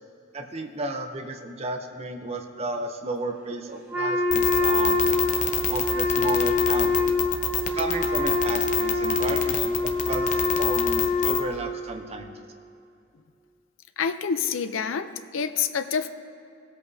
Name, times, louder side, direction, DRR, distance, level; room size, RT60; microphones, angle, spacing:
voice 1, 0.3-5.0 5.7-7.1 7.7-12.3, right 2 dB, 30° right, 4 dB, 0.6 m, -33 dB
Wind instrument woodwind instrument, 3.9-11.8, left 3 dB, 5° right, 1.4 m, -25 dB
sound 1, 4.3-11.4, left 8 dB, 40° left, 0.7 m, -27 dB
voice 2, 14.0-16.1, left 6 dB, 75° left, 10 dB, 0.5 m, -27 dB
19.5 x 8.2 x 2.7 m, 2.5 s
head